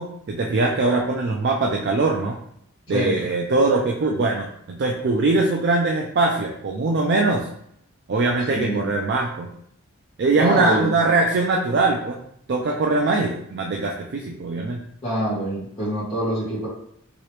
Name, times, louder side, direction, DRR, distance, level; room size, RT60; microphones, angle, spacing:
voice 1, 0.0-2.4 2.9-7.4 8.1-9.5 10.2-12.2 12.5-14.8, right 3 dB, 50° right, 0 dB, 0.3 m, -22 dB
voice 2, 2.9-3.2 8.5-8.9 10.4-10.9 15.0-16.7, right 1 dB, 20° left, -12 dB, 1.1 m, -25 dB
2.9 x 2.8 x 3.1 m, 0.70 s
head